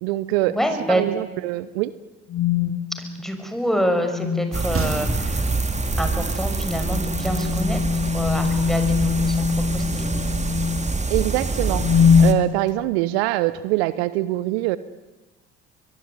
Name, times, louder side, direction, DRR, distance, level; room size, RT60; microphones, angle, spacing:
voice 1, 0.0-0.6 0.9-1.9 11.1-11.8 12.2-14.8, right 17 dB, 75° right, 16 dB, 0.9 m, -23 dB
voice 2, 0.5-1.0 3.2-5.5 6.0-10.1, equal, ahead, 6 dB, 6.6 m, -26 dB
sound 1, 2.3-2.8 4.1-4.6 6.8-11.0 11.7-12.4, left 6 dB, 50° left, 2.3 m, -21 dB
sound 2, 4.5-12.3, right 3 dB, 20° right, 2.7 m, -26 dB
sound 3, 4.7-8.2 8.5-8.6, right 4 dB, 40° right, 4.3 m, -33 dB
23.5 x 22.5 x 9.8 m, 1.2 s
hypercardioid pair, 50°, 32 cm